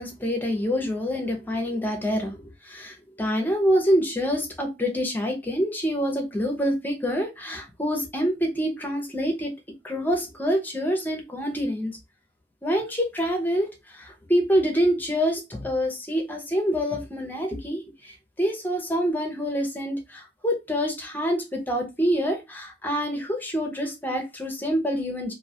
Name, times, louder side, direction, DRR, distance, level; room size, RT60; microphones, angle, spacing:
voice 1, 0.0-9.5 9.8-12.0 12.6-25.3, equal, 10° left, 3 dB, 0.5 m, -26 dB
2.5 x 2.2 x 2.6 m, 0.24 s
head